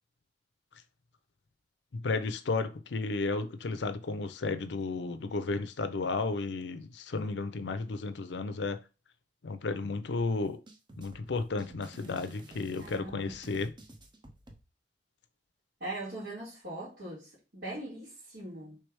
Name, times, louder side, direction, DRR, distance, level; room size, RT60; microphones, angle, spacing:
voice 1, 1.9-8.8 9.4-10.6 11.0-13.7, left 3 dB, 70° left, 0.5 m, -33 dB
sound 1, 10.2-14.6, right 1 dB, 25° right, 0.7 m, -51 dB
voice 2, 12.8-13.3 15.8-18.8, right 2 dB, 65° right, 2.0 m, -41 dB
3.4 x 3.3 x 4.7 m
head